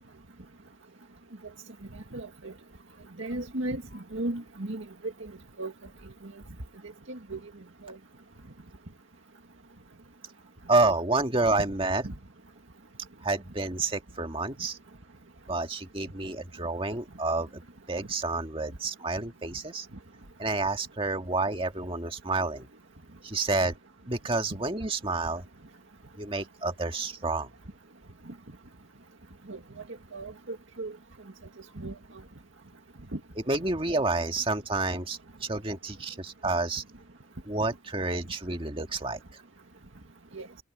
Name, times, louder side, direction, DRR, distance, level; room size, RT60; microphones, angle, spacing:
voice 1, 2.1-2.5 3.2-3.8 4.1-4.8 5.6-5.7 7.1-7.4 7.8-8.0 12.0-12.1 29.5-29.6 30.1-30.9 31.8-31.9 40.3-40.5, right 2 dB, 85° right, 2.0 m, -35 dB
voice 2, 10.7-12.1 13.2-14.8 15.5-17.6 17.9-19.9 20.4-22.7 23.2-23.7 24.1-25.4 26.2-27.5 33.5-36.8 37.5-39.2, right 3 dB, 30° right, 1.9 m, -29 dB
head